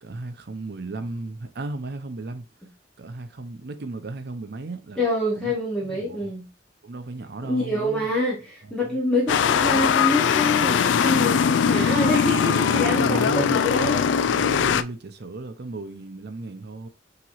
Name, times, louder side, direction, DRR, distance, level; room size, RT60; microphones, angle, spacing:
voice 1, 0.0-2.5 3.0-5.0 5.4-5.6 5.9-6.3 6.8-8.1 8.8-9.0 12.7-13.6 14.3-16.9, right 2 dB, 55° right, 0.6 m, -35 dB
voice 2, 5.0-6.5 7.4-14.0, left 1 dB, 5° left, 0.9 m, -26 dB
sound 1, 9.3-14.8, left 7 dB, 75° left, 0.3 m, -21 dB
5.9 x 3.0 x 2.5 m
head